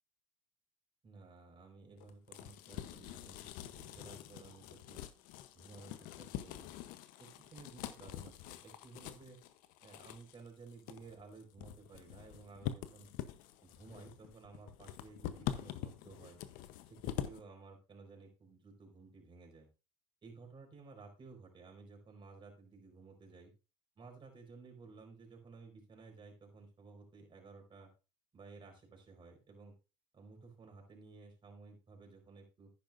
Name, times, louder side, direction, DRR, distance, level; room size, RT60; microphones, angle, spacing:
voice 1, 1.0-5.0 5.5-6.7 7.2-9.4 9.8-13.1 13.6-16.4 16.8-19.7 20.2-23.5 24.0-27.9 28.3-29.7 30.1-32.7, right 4 dB, 30° right, 1 dB, 4.5 m, -55 dB
sound 1, 2.0-17.4, left 12 dB, 65° left, 0.9 m, -45 dB
10.5 x 9.6 x 2.6 m, 0.30 s
hypercardioid pair, 80°, 16 cm